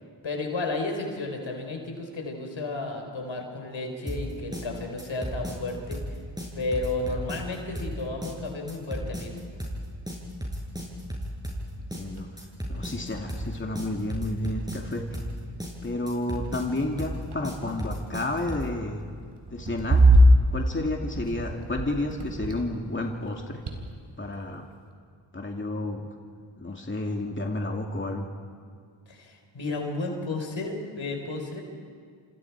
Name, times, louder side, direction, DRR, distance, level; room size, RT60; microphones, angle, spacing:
voice 1, 0.2-6.0 6.5-9.3 29.1-31.6, left 2 dB, 70° left, 3 dB, 4.5 m, -32 dB
sound 1, 4.1-18.8, equal, 10° right, 7.8 m, -34 dB
sound 2, 11.6-11.7 12.2-12.4 12.7-14.4 15.2-15.6 15.9-16.2 17.0-17.9 19.3-22.9 23.2-24.2, right 1 dB, 60° right, 3.9 m, -24 dB
voice 2, 11.7-12.3 12.7-15.2 15.8-19.0 19.5-20.0 20.5-23.6 24.2-24.7 25.3-26.1 26.6-28.3, left 2 dB, 25° left, 1 dB, 2.5 m, -31 dB
28.5 x 26.5 x 4.8 m, 2.1 s
cardioid pair, 50°, 47 cm